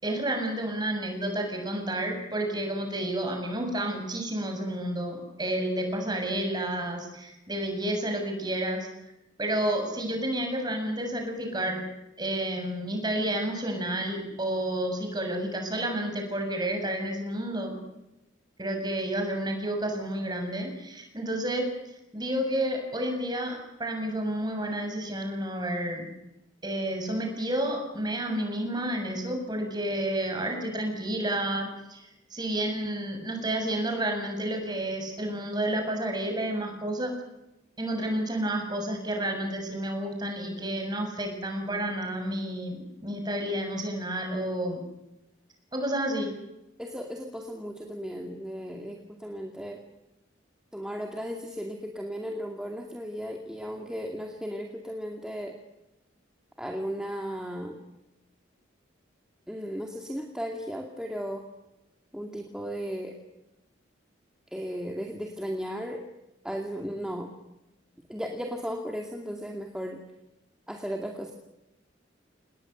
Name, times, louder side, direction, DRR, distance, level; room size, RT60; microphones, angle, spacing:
voice 1, 0.0-8.9 9.4-11.8 12.2-17.8 18.6-21.7 22.1-26.1 26.6-37.1 37.8-44.8 45.7-46.3, right 1 dB, 20° right, 4 dB, 7.1 m, -30 dB
voice 2, 46.8-49.8 50.7-55.5 56.6-57.8 59.5-61.4 62.1-63.1 64.5-66.0 66.4-67.3 68.1-70.0 70.7-71.3, equal, 5° right, 2 dB, 2.4 m, -35 dB
28.5 x 20.0 x 8.0 m, 0.92 s
head